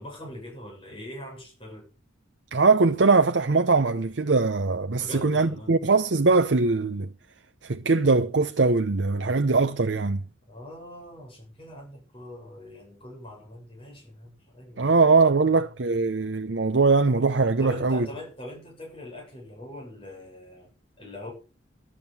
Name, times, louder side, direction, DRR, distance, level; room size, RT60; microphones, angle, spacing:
voice 1, 0.0-1.8 5.0-5.7 10.5-15.0 15.3-15.5 17.6-21.3, left 1 dB, 30° left, 7.5 m, -42 dB
voice 2, 2.5-7.1 7.6-10.2 14.8-18.1, right 3 dB, 70° right, 0.8 m, -21 dB
12.5 x 7.5 x 7.6 m
head